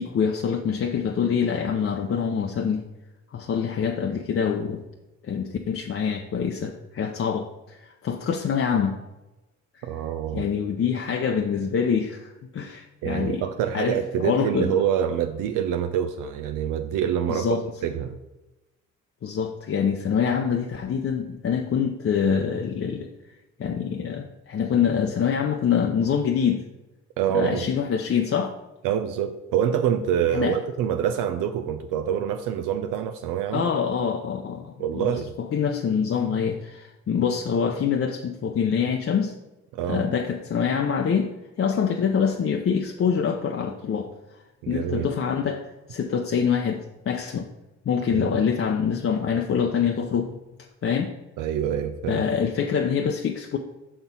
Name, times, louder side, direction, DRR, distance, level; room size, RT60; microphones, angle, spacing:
voice 1, 0.0-2.8 3.3-4.8 5.2-9.0 9.8-9.9 10.3-13.4 13.7-14.7 17.3-17.6 19.2-23.1 23.6-26.6 27.3-28.5 30.3-30.6 33.5-39.3 39.9-41.3 41.6-44.1 44.7-45.6 45.9-46.8 47.1-47.5 47.9-50.4 50.8-51.1 52.1-53.6, left 7 dB, 45° left, 3 dB, 0.6 m, -25 dB
voice 2, 9.8-10.4 13.0-18.1 27.2-27.7 28.8-33.7 34.8-35.3 39.7-40.0 44.6-45.1 48.1-48.4 51.4-52.2, right 9 dB, 80° right, 8 dB, 0.5 m, -26 dB
5.7 x 4.3 x 5.3 m, 1.0 s
supercardioid pair, 60°, 31 cm